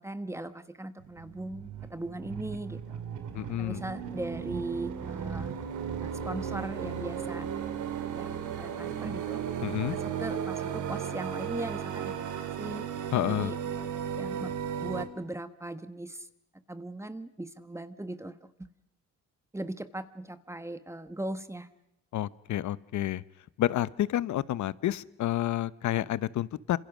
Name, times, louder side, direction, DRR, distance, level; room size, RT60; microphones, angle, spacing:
voice 1, 0.0-3.0 3.6-5.5 6.0-7.5 8.1-9.4 9.9-12.9 13.2-13.6 14.1-14.5 14.8-16.3 16.7-18.7 19.5-21.7, right 1 dB, 10° right, 12 dB, 1.4 m, -39 dB
sound 1, 1.0-15.0, right 8 dB, 80° right, 2.7 m, -35 dB
voice 2, 3.3-3.8 9.6-10.0 13.1-13.5 22.1-23.2 23.6-26.8, left 13 dB, 70° left, 18 dB, 0.9 m, -29 dB
27.5 x 26.5 x 6.3 m, 0.85 s
cardioid pair, 90°, 30 cm